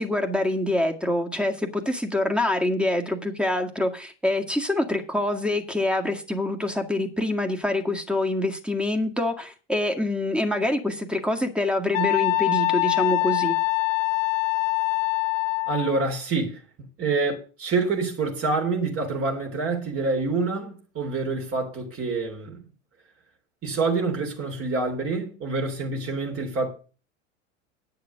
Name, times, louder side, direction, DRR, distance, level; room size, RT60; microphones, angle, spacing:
voice 1, 0.0-13.6, left 1 dB, 5° right, 1.8 m, -25 dB
Wind instrument woodwind instrument, 11.9-16.0, left 22 dB, 80° left, 0.6 m, -24 dB
voice 2, 15.7-16.6 17.0-22.7 23.6-26.7, right 3 dB, 35° right, 3.4 m, -27 dB
9.6 x 6.8 x 6.5 m
hypercardioid pair, 90°, 38 cm